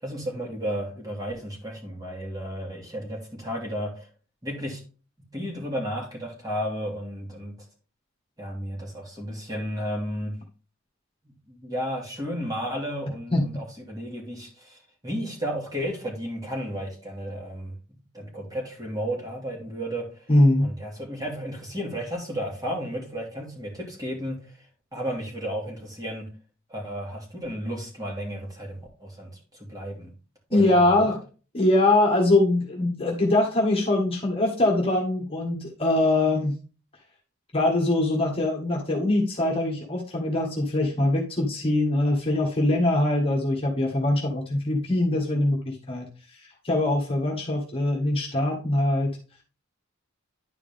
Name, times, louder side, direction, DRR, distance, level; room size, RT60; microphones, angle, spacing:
voice 1, 0.0-4.1 4.4-4.8 5.3-7.5 8.4-10.3 11.5-14.8 15.0-17.7 18.1-20.2 20.6-24.4 24.9-26.3 26.7-30.1 30.5-31.1, equal, 20° right, 2.9 m, -33 dB
voice 2, 20.3-20.7 30.5-31.2 31.5-36.6 37.5-49.1, left 1 dB, 25° left, 1.7 m, -23 dB
10.5 x 4.9 x 3.5 m
head